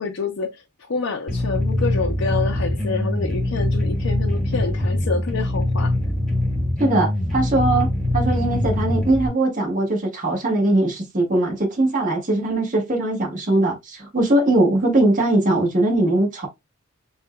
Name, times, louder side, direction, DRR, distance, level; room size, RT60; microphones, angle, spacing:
voice 1, 0.0-5.9, left 4 dB, 65° left, 0.6 m, -27 dB
sound 1, 1.3-9.3, left 1 dB, ahead, 1.2 m, -23 dB
voice 2, 6.8-7.9 8.1-16.5, right 2 dB, 40° right, 1.6 m, -20 dB
6.5 x 2.4 x 2.3 m
head